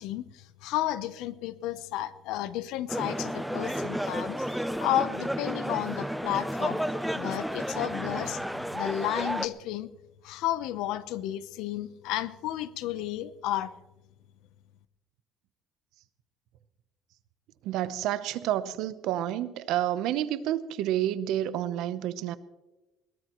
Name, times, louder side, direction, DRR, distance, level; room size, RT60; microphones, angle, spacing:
voice 1, 0.0-6.8 7.1-8.4 8.7-9.9 10.2-13.7, left 13 dB, 80° left, 0.7 m, -32 dB
sound 1, 2.9-9.5, equal, ahead, 0.5 m, -32 dB
voice 2, 17.6-22.3, right 12 dB, 70° right, 0.8 m, -29 dB
21.5 x 18.5 x 3.1 m
cardioid pair, 160°, 0 cm